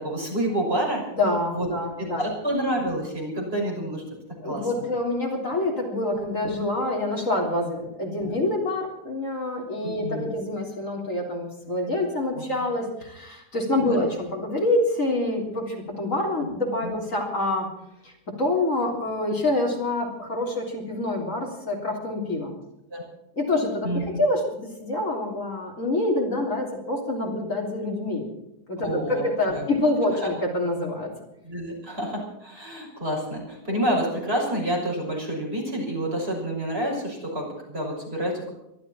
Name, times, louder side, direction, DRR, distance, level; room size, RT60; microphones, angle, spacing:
voice 1, 0.0-1.0 1.5-1.7 2.0-4.0 4.4-4.8 8.2-8.4 9.8-10.3 12.3-12.4 13.9-14.0 16.8-16.9 22.9-23.0 23.8-24.2 28.8-29.7 30.2-30.3 31.4-38.5, right 1 dB, 35° right, -2 dB, 6.4 m, -28 dB
voice 2, 1.2-2.3 4.4-17.7 18.0-18.1 18.4-22.6 23.4-24.4 24.8-28.3 28.7-31.1, left 2 dB, 50° left, -1 dB, 3.8 m, -26 dB
24.0 x 13.0 x 4.4 m, 0.85 s
omnidirectional pair, 1.7 m